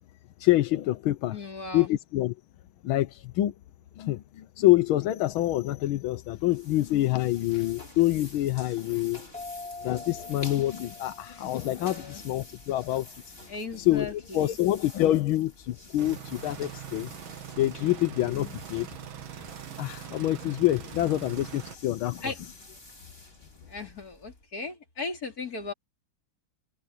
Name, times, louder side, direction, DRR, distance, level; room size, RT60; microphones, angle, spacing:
voice 1, 0.4-1.4 1.7-2.3 2.8-3.5 4.0-9.3 9.8-13.2 13.8-17.1 17.6-18.9 19.8-22.2, left 15 dB, 85° left, 1.6 m, -26 dB
voice 2, 1.3-1.9 11.8-12.2 13.5-14.6 22.2-22.4 23.7-25.7, left 3 dB, 45° left, 4.4 m, -37 dB
sound 1, 6.0-24.5, left 1 dB, 25° left, 5.6 m, -49 dB
sound 2, 9.3-12.6, left 3 dB, 5° left, 0.6 m, -44 dB
sound 3, 16.0-21.8, right 10 dB, 80° right, 2.1 m, -42 dB
omnidirectional pair, 2.2 m